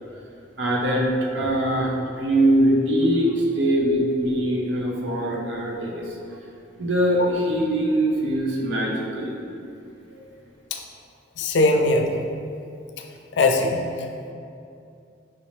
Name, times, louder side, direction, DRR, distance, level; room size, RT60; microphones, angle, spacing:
voice 1, 0.6-1.1 1.3-6.2 6.8-9.3 10.1-10.2, right 1 dB, 85° right, -2 dB, 0.8 m, -22 dB
voice 2, 11.4-12.1 13.4-13.8, left 2 dB, 70° left, 3 dB, 0.4 m, -20 dB
5.4 x 2.8 x 3.1 m, 2.6 s
head